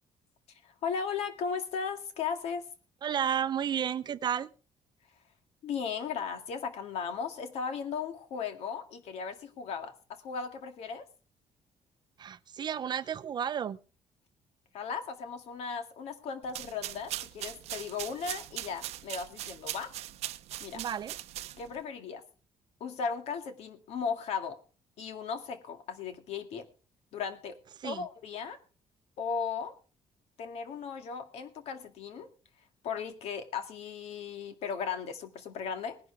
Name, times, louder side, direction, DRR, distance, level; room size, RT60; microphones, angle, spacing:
voice 1, 0.6-2.6 5.6-11.0 14.7-19.9 20.6-20.8 21.6-22.2 22.8-24.6 25.0-26.7 27.1-28.6 29.2-29.7 30.4-32.3 32.8-36.0, left 6 dB, 75° left, 2.1 m, -36 dB
voice 2, 3.0-4.5 12.2-13.8 20.7-21.2 27.8-28.1, right 8 dB, 40° right, 0.6 m, -32 dB
sound 1, 16.4-21.8, right 14 dB, 75° right, 0.7 m, -40 dB
19.5 x 11.0 x 3.5 m
cardioid pair, 135°, 11 cm